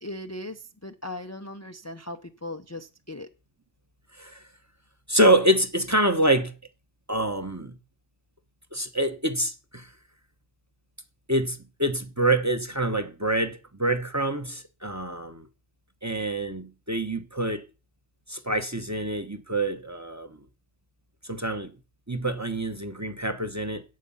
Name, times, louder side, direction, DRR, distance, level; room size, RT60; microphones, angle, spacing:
voice 1, 0.0-3.3, left 1 dB, 15° left, 0.6 m, -38 dB
voice 2, 5.1-6.5 7.1-7.8 8.7-9.9 11.3-15.5 16.0-17.7 18.3-20.4 21.2-21.7 22.1-23.8, right 1 dB, 15° right, 1.0 m, -26 dB
14.0 x 8.6 x 5.6 m
omnidirectional pair, 1.2 m